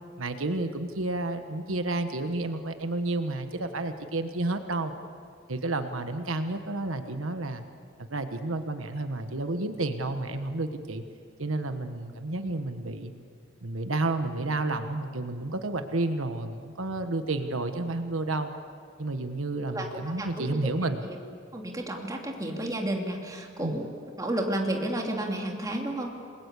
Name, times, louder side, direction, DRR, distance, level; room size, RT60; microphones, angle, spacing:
voice 1, 0.2-4.9 5.5-7.6 8.0-11.0 11.4-13.1 13.6-18.5 19.0-21.0 23.6-23.8, right 2 dB, 85° right, 8 dB, 1.3 m, -31 dB
voice 2, 20.2-20.6 21.0-21.2 21.5-23.9 24.2-26.1, right 1 dB, 20° right, 1 dB, 3.0 m, -31 dB
28.5 x 21.0 x 8.4 m, 2.2 s
head